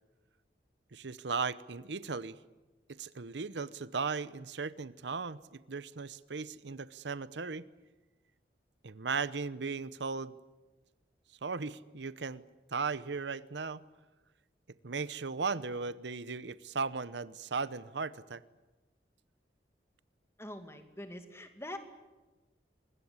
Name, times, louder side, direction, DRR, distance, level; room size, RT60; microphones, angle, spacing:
voice 1, 0.9-2.4 2.9-7.6 8.8-10.3 11.4-12.4 12.7-13.8 14.8-18.4, right 4 dB, 80° right, 16 dB, 0.9 m, -37 dB
voice 2, 20.4-21.8, left 1 dB, 15° left, 7 dB, 2.3 m, -44 dB
24.5 x 21.0 x 9.7 m, 1.2 s
head